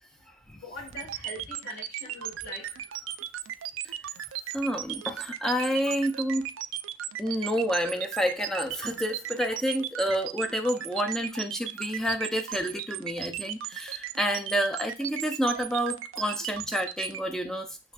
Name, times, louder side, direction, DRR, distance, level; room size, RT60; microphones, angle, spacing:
voice 1, 0.5-2.8 13.2-13.4, left 1 dB, 85° left, -6 dB, 2.4 m, -42 dB
sound 1, 0.9-17.2, right 12 dB, 85° right, 0.3 m, -35 dB
voice 2, 4.5-6.5 7.2-17.9, equal, 5° left, 4 dB, 0.4 m, -29 dB
5.8 x 3.1 x 2.4 m, 0.28 s
head